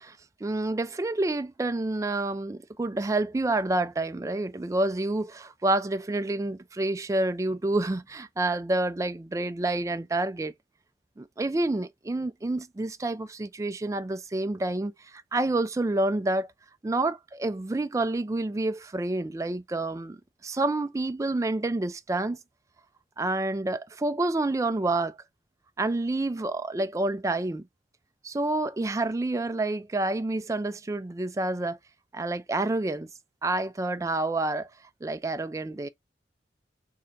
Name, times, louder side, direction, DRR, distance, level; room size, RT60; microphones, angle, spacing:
voice 1, 0.0-10.5 11.2-16.5 16.8-22.4 23.2-25.2 25.8-27.6 28.2-31.8 32.1-33.1 33.4-34.7 35.0-35.9, right 2 dB, 20° right, 0.3 m, -28 dB
3.3 x 2.8 x 3.7 m
head